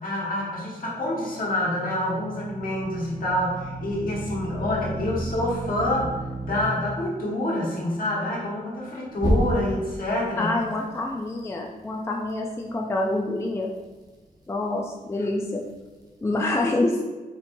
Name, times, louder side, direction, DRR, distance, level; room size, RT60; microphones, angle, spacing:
voice 1, 0.0-6.1 6.4-10.5 15.2-15.3, left 1 dB, 65° left, -5 dB, 1.4 m, -27 dB
sound 1, 0.9-6.6 9.2-9.9, right 1 dB, 25° right, 0.9 m, -31 dB
voice 2, 10.4-13.7 14.5-15.6 16.2-17.0, left 2 dB, 15° left, 0 dB, 0.4 m, -26 dB
4.4 x 4.2 x 2.6 m, 1.3 s
wide cardioid pair, 135°, 16 cm